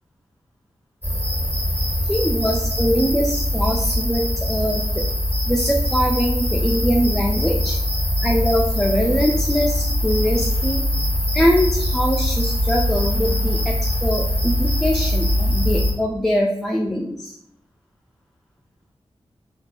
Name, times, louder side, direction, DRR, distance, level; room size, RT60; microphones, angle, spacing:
sound 1, 1.0-15.9, left 1 dB, 20° right, 0.9 m, -22 dB
voice 1, 2.0-5.0 5.5-7.8 8.2-10.8 11.3-17.3, equal, ahead, 0 dB, 0.3 m, -22 dB
2.6 x 2.2 x 2.4 m, 0.77 s
cardioid pair, 50°, 11 cm